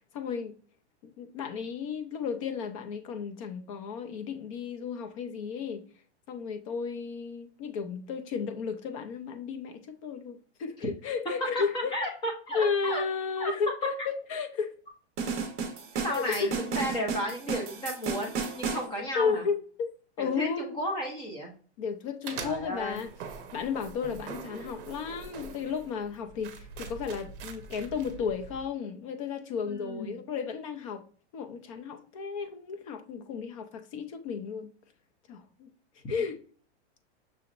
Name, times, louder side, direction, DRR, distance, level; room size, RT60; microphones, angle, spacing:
voice 1, 0.1-0.5 1.0-5.8 6.3-11.9 12.5-14.7 15.9-16.5 19.1-19.9 20.2-20.8 21.8-23.1 23.5-31.0 31.3-34.7 35.3-35.7 36.1-36.4, left 6 dB, 30° left, 0.5 m, -33 dB
voice 2, 11.5-13.0 13.4-13.5 16.0-19.5 20.2-21.5 22.3-23.0 29.7-30.2 36.0-36.3, equal, 15° left, 0.9 m, -34 dB
sound 1, 15.2-18.9, right 5 dB, 30° right, 1.1 m, -33 dB
sound 2, 22.2-28.7, right 5 dB, 50° right, 0.9 m, -44 dB
6.3 x 2.9 x 2.5 m
supercardioid pair, 160°, 34 cm